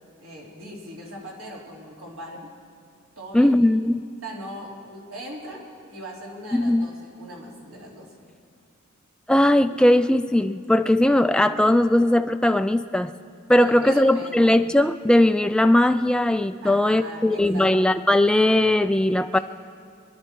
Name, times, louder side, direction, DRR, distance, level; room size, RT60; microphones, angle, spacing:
voice 1, 0.2-2.5 3.2-3.6 4.2-8.1 13.6-14.5 16.6-17.7 19.3-19.4, equal, 85° right, -3 dB, 3.4 m, -39 dB
voice 2, 3.3-4.0 6.5-6.9 9.3-13.1 13.5-19.4, left 1 dB, 5° left, 9 dB, 0.3 m, -19 dB
24.0 x 11.0 x 4.6 m, 2.3 s
head